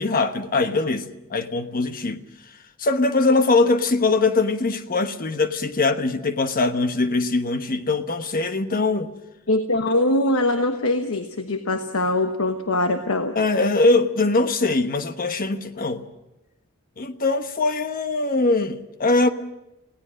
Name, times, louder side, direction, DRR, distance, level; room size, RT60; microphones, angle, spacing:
voice 1, 0.0-2.2 2.8-9.1 13.3-16.0 17.0-19.3, left 3 dB, 40° left, 1.2 m, -22 dB
voice 2, 9.5-13.3, left 2 dB, 70° left, 1.2 m, -22 dB
28.5 x 17.5 x 6.4 m
head